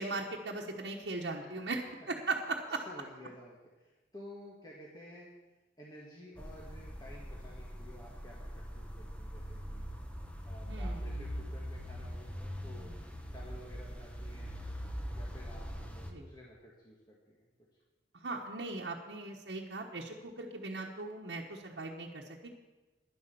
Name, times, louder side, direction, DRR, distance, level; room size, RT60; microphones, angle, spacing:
voice 1, 0.0-1.8 2.1-2.8 10.7-11.0 16.1-16.2 18.1-22.5, right 3 dB, 80° right, -2 dB, 1.2 m, -38 dB
voice 2, 2.7-5.3 5.8-9.9 10.4-12.9 13.3-14.5 15.1-17.4, left 1 dB, 25° left, -4 dB, 1.9 m, -52 dB
sound 1, 6.4-16.1, equal, 5° left, 1.1 m, -42 dB
11.0 x 11.0 x 6.9 m, 1.2 s
head